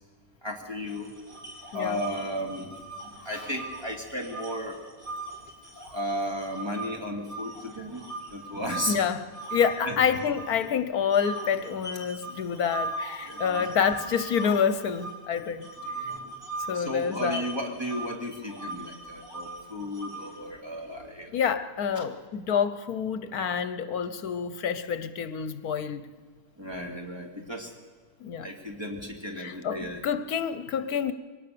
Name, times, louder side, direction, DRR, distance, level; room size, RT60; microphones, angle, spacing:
voice 1, 0.4-1.1 1.7-2.7 3.0-4.8 5.9-8.0 8.3-9.0 9.8-10.0 13.3-13.7 15.9-16.4 16.7-21.4 21.9-22.1 26.6-27.7 28.4-30.0, equal, 15° right, 2.8 m, -34 dB
sound 1, 0.9-6.9 7.3-10.7 11.1-20.5, right 2 dB, 30° right, 5.4 m, -39 dB
voice 2, 8.9-15.7 16.7-17.5 21.3-26.0 28.2-28.5 29.4-31.1, left 7 dB, 75° left, 1.3 m, -28 dB
22.5 x 18.5 x 6.9 m
omnidirectional pair, 1.6 m